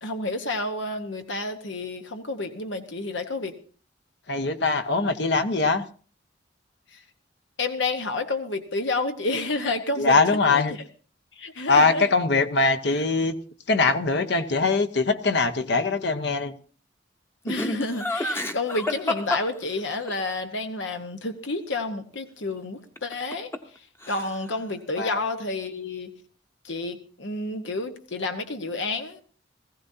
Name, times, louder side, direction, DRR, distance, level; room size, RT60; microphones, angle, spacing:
voice 1, 0.0-3.5 6.9-7.0 7.6-10.6 11.4-12.1 12.8-13.0 17.4-23.5 24.1-26.1 26.6-29.2, left 2 dB, 85° left, 6 dB, 1.2 m, -30 dB
voice 2, 4.3-5.8 10.0-10.7 11.7-13.3 13.7-16.5 25.0-25.2, left 3 dB, 65° left, 9 dB, 0.9 m, -22 dB
Laughter, 17.5-20.2 23.0-23.8 24.0-24.6, left 2 dB, 15° left, 0.9 m, -30 dB
19.0 x 15.5 x 2.7 m, 0.40 s
head